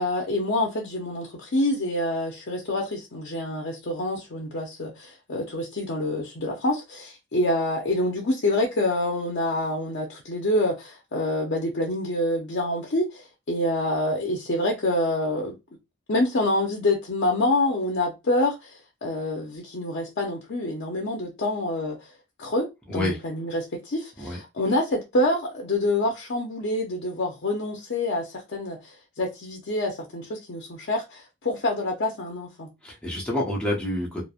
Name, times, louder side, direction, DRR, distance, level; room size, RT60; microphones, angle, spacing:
voice 1, 0.0-15.6 16.1-22.0 22.4-32.7, left 1 dB, 55° left, 0.6 m, -27 dB
voice 2, 22.9-23.2 24.2-24.4 32.8-34.2, left 1 dB, 5° left, 0.7 m, -28 dB
3.1 x 2.1 x 2.3 m
head